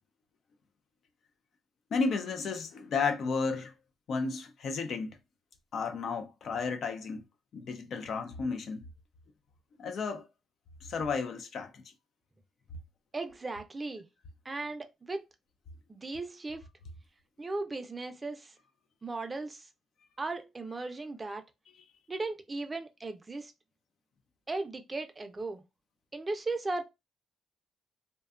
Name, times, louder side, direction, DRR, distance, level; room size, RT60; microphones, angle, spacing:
voice 1, 1.9-3.7 4.1-5.2 5.7-7.2 7.5-8.8 9.8-10.3 10.9-11.8, left 4 dB, 60° left, 0.4 m, -33 dB
voice 2, 13.1-14.1 14.4-15.2 15.9-16.6 17.4-18.5 19.0-19.7 20.2-21.4 22.1-23.5 24.5-25.6 26.1-26.8, right 3 dB, 25° right, 0.5 m, -37 dB
2.6 x 2.2 x 2.4 m
cardioid pair, 90°, 0 cm